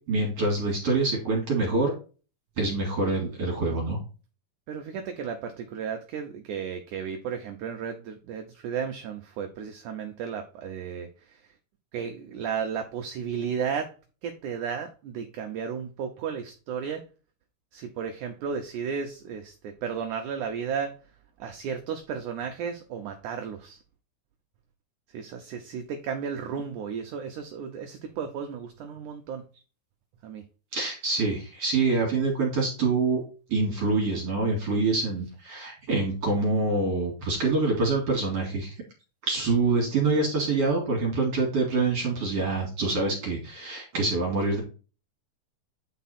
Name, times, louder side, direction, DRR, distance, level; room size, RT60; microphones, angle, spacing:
voice 1, 0.1-1.9 2.6-4.0 30.7-33.2 33.5-38.8 39.2-44.6, right 3 dB, 45° right, 0 dB, 2.7 m, -26 dB
voice 2, 4.7-11.5 11.9-13.9 14.2-17.1 17.7-21.0 21.4-23.8 25.1-29.4 30.2-30.4, right 7 dB, 80° right, 5 dB, 1.8 m, -34 dB
9.3 x 4.6 x 4.2 m, 0.34 s
omnidirectional pair, 4.6 m